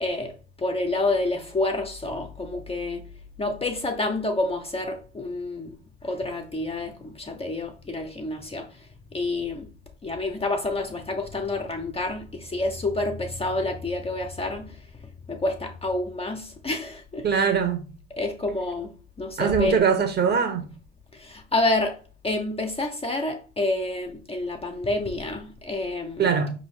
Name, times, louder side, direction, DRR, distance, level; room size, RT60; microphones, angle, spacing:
voice 1, 0.0-3.0 3.4-5.7 6.0-8.9 9.1-9.7 10.0-14.8 15.3-17.5 18.1-19.9 21.1-22.0 22.2-26.3, left 2 dB, 20° left, 0.6 m, -28 dB
voice 2, 17.2-17.8 19.4-20.7 26.2-26.5, right 6 dB, 35° right, 1.0 m, -22 dB
4.8 x 2.7 x 3.1 m
hypercardioid pair, 60°, 30 cm